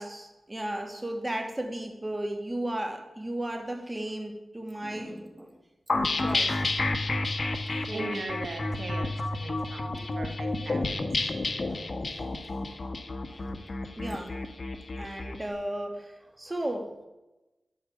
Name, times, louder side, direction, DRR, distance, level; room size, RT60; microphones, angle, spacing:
voice 1, 0.0-5.6 6.2-6.7 7.7-8.2 9.8-10.1 10.4-10.5 11.7-11.9 13.3-13.5 14.0-14.4 15.0-16.9, right 1 dB, 20° right, 5 dB, 2.7 m, -35 dB
sound 1, 5.9-15.4, left 2 dB, 50° left, 1.6 m, -30 dB
voice 2, 7.9-11.0, right 3 dB, 70° right, 4 dB, 2.0 m, -39 dB
10.5 x 9.2 x 9.1 m, 1.0 s
cardioid pair, 65°, 0 cm